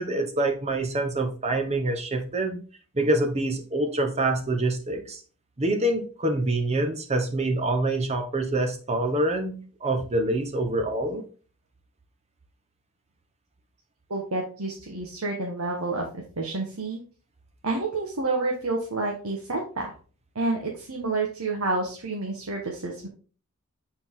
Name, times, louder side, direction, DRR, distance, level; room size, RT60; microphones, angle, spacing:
voice 1, 0.0-2.6 2.9-5.2 5.6-11.2, right 2 dB, 30° right, 5 dB, 1.1 m, -26 dB
voice 2, 14.1-17.0 17.6-19.9 20.3-23.1, right 3 dB, 85° right, -1 dB, 1.4 m, -29 dB
8.0 x 4.4 x 3.7 m, 0.39 s
head